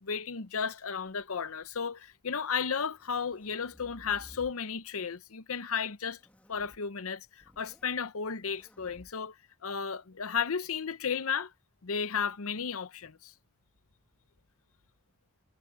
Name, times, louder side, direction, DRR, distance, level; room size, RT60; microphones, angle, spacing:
voice 1, 0.0-6.2 6.5-9.4 9.6-11.5 11.8-13.3, left 6 dB, 75° left, 0.8 m, -34 dB
sound 1, 1.0-1.8 2.7-4.6 6.1-6.8 7.3-8.0 8.4-9.1, equal, 5° left, 1.9 m, -57 dB
head